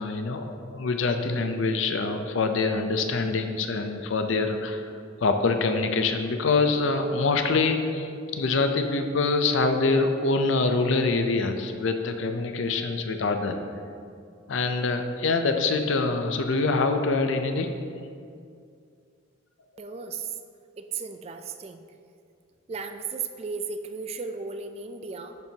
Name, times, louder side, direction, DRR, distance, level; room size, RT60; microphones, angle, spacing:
voice 1, 0.0-4.9 5.2-13.6 14.5-17.7, left 3 dB, 75° left, 6 dB, 0.5 m, -25 dB
voice 2, 19.8-20.3 20.8-21.8 22.7-25.4, right 5 dB, 30° right, 7 dB, 0.3 m, -35 dB
10.5 x 4.5 x 2.8 m, 2.3 s
head